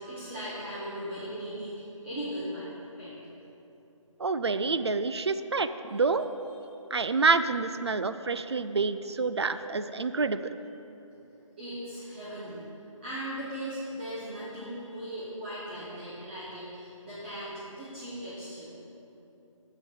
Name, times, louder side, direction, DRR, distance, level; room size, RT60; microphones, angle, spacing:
voice 1, 0.0-2.7 3.0-3.1 5.9-6.0 9.3-9.5 11.6-12.6 13.0-18.7, equal, 20° right, -10 dB, 1.1 m, -38 dB
voice 2, 4.2-6.3 6.9-10.4, right 4 dB, 50° right, 11 dB, 0.4 m, -27 dB
7.5 x 6.4 x 6.5 m, 2.9 s
figure-of-eight pair, 165°, 17 cm